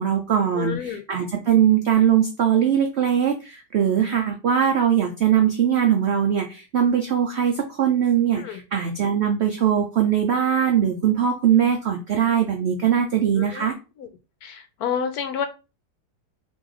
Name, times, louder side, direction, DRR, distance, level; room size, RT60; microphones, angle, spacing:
voice 1, 0.0-13.7, right 9 dB, 75° right, 3 dB, 0.6 m, -21 dB
voice 2, 0.5-1.0 8.4-8.6 13.4-13.7 14.0-14.1 14.4-15.5, left 7 dB, 70° left, 9 dB, 1.0 m, -29 dB
3.1 x 3.0 x 3.7 m, 0.30 s
omnidirectional pair, 1.8 m